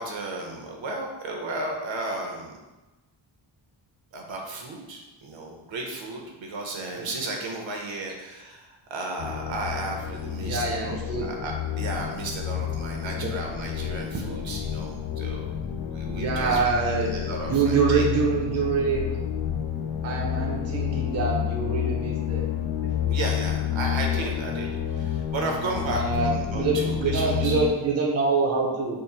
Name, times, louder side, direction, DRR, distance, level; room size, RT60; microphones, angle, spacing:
voice 1, 0.0-2.5 4.1-15.6 15.9-18.0 23.1-27.7, right 2 dB, 70° right, 1 dB, 0.8 m, -34 dB
sound 1, 9.2-27.7, left 9 dB, 75° left, 0.5 m, -30 dB
voice 2, 10.4-11.3 13.1-13.3 16.1-17.1 17.4-19.0 20.0-22.4 23.0-23.1 25.9-29.0, right 4 dB, 35° right, -1 dB, 0.5 m, -25 dB
3.7 x 2.0 x 4.1 m, 1.1 s
wide cardioid pair, 155°, 48 cm